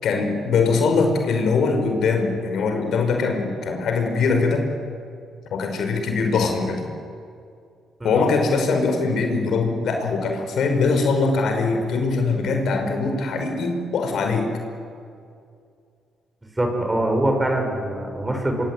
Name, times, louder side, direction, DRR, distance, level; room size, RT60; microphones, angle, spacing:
voice 1, 0.0-4.7 5.5-6.9 8.0-14.5, left 4 dB, 70° left, 4 dB, 5.1 m, -22 dB
voice 2, 16.6-18.7, right 1 dB, 15° right, 3 dB, 6.4 m, -23 dB
25.0 x 24.0 x 9.7 m, 2.4 s
cardioid pair, 90°, 0 cm